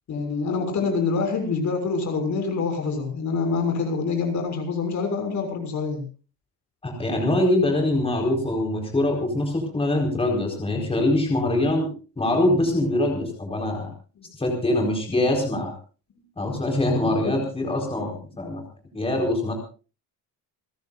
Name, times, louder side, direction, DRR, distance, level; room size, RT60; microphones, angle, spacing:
voice 1, 0.1-6.0 17.0-17.3, left 4 dB, 50° left, 5 dB, 6.4 m, -26 dB
voice 2, 6.8-11.9 12.2-13.9 14.4-15.7 16.4-18.6 18.9-19.5, left 1 dB, 15° left, 1 dB, 4.6 m, -23 dB
29.0 x 15.0 x 2.5 m, 0.35 s
cardioid pair, 130°, 36 cm